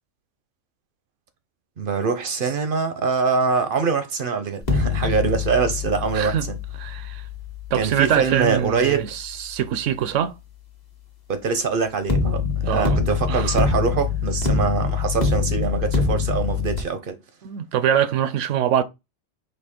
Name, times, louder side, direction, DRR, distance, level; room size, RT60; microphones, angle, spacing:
voice 1, 1.8-6.6 7.7-9.1 11.3-17.2, right 5 dB, 55° right, 0.7 m, -24 dB
sound 1, 4.6-9.7 12.1-16.8, left 5 dB, 35° left, 1.1 m, -25 dB
voice 2, 6.8-7.2 7.7-10.4 12.6-13.0 13.3-13.6 17.4-18.8, right 10 dB, 80° right, 0.9 m, -23 dB
4.2 x 2.8 x 4.2 m
omnidirectional pair, 1.3 m